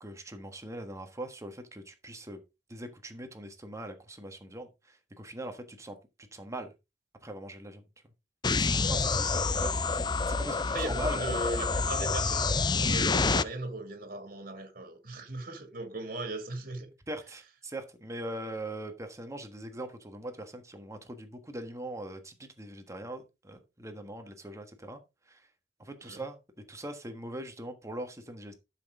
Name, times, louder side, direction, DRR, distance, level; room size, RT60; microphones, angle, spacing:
voice 1, 0.0-2.4 2.7-6.7 7.2-7.8 8.5-11.2 17.1-25.0 25.2-25.5 25.8-26.4 26.7-28.5, right 1 dB, 15° right, 1.4 m, -41 dB
sound 1, 8.4-13.4, left 4 dB, 25° left, 0.5 m, -28 dB
voice 2, 10.7-16.9 26.0-26.2, right 2 dB, 50° right, 2.4 m, -38 dB
12.0 x 6.2 x 3.7 m
head